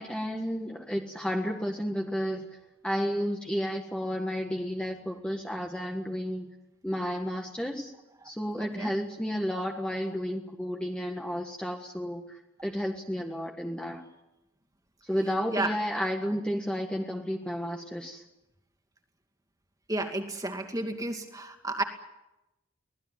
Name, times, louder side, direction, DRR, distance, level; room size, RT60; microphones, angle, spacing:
voice 1, 0.0-2.6 2.8-6.5 6.8-7.9 8.2-14.0 15.0-18.2, equal, 5° left, 1 dB, 1.6 m, -32 dB
voice 2, 8.6-8.9 15.5-15.7 19.9-21.8, right 2 dB, 15° right, 5 dB, 2.4 m, -32 dB
24.5 x 18.5 x 9.3 m, 0.94 s
head